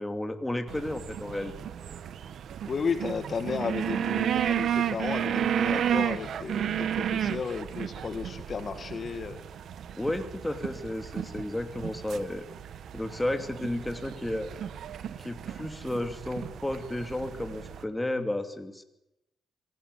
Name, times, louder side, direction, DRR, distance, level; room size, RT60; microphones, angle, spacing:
voice 1, 0.0-1.5 10.0-12.4 12.9-14.5 15.2-18.8, left 1 dB, 10° left, 7 dB, 2.7 m, -32 dB
sound 1, 0.7-17.8, right 9 dB, 70° right, 1.3 m, -33 dB
voice 2, 2.7-9.4, left 5 dB, 45° left, 9 dB, 2.1 m, -33 dB
25.0 x 16.5 x 9.9 m, 0.88 s
cardioid pair, 90°, 0 cm